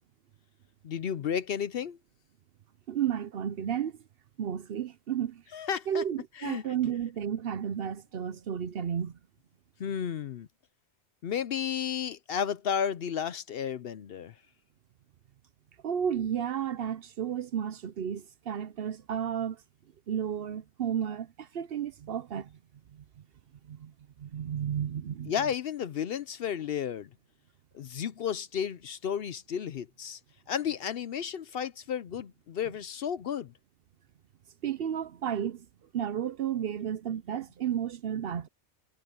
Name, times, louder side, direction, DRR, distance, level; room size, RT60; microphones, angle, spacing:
voice 1, 0.8-2.0 5.5-6.0 6.4-6.6 9.8-10.5 11.2-14.3 25.3-27.1 27.7-30.2 30.5-33.5, left 8 dB, 60° left, 0.7 m, -33 dB
voice 2, 2.9-3.9 4.4-5.4 5.9-9.2 15.8-19.6 20.1-22.5 22.9-23.0 23.7-23.9 24.2-25.3 34.6-35.7 35.9-38.5, right 9 dB, 60° right, 0.8 m, -32 dB
omnidirectional pair, 1.2 m